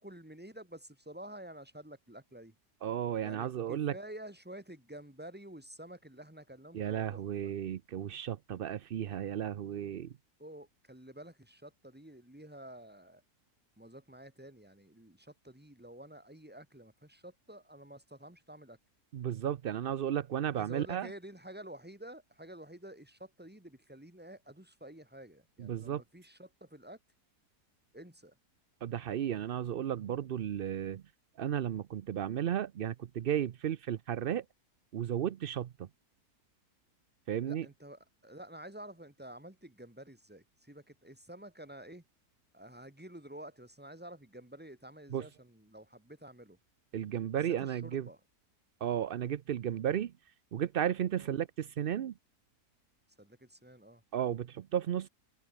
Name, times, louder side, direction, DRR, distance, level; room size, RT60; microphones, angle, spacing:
voice 1, 0.0-2.6 3.2-7.5 10.4-13.2 13.8-18.8 20.5-27.0 27.9-28.3 29.1-29.3 37.5-42.0 42.5-46.6 47.3-48.2 51.1-51.3 53.2-54.0, right 1 dB, 5° right, 2.6 m, -50 dB
voice 2, 2.8-3.9 6.7-10.1 19.1-21.1 25.6-26.0 28.8-31.0 31.4-34.4 34.9-35.9 37.3-37.7 45.1-45.2 46.9-48.1 48.8-50.1 50.5-52.1 54.1-55.1, right 10 dB, 75° right, 0.5 m, -34 dB
open air
omnidirectional pair, 1.7 m